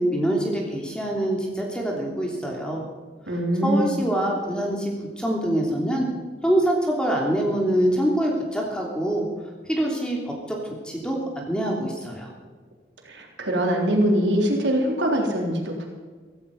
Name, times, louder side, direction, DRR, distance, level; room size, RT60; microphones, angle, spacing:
voice 1, 0.0-2.8 3.6-6.1 6.4-9.2 9.7-10.6 10.8-12.3, right 1 dB, 5° left, -1 dB, 3.2 m, -25 dB
voice 2, 3.3-4.0 13.0-15.9, equal, 85° right, 1 dB, 3.8 m, -23 dB
16.0 x 15.5 x 5.4 m, 1.5 s
head